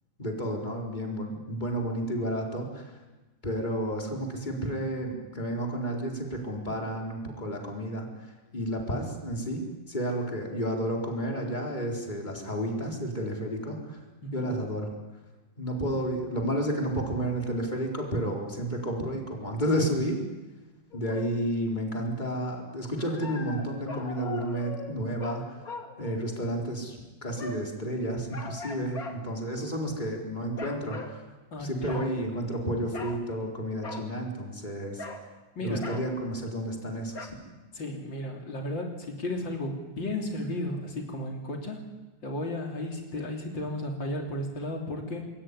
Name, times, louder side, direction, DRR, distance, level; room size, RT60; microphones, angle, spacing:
voice 1, 0.2-2.9 3.4-8.1 8.5-14.0 14.3-14.9 15.6-20.2 20.9-25.4 26.0-27.0 27.2-31.2 31.6-35.0 35.6-37.4, equal, 25° left, 0 dB, 4.5 m, -31 dB
voice 2, 14.2-14.5 31.5-32.0 35.6-35.9 37.7-41.8 42.2-45.3, left 1 dB, 75° left, 2 dB, 3.9 m, -34 dB
sound 1, 20.9-21.3 23.0-26.6 27.4-27.7 28.3-29.2 29.7-30.0 30.6-31.2 31.9-32.1 32.9-33.2 33.8-34.1 35.0-35.3 35.8-36.1 37.1-37.3, left 3 dB, 50° left, 2.9 m, -40 dB
27.0 x 21.0 x 9.9 m, 1.2 s
omnidirectional pair, 2.0 m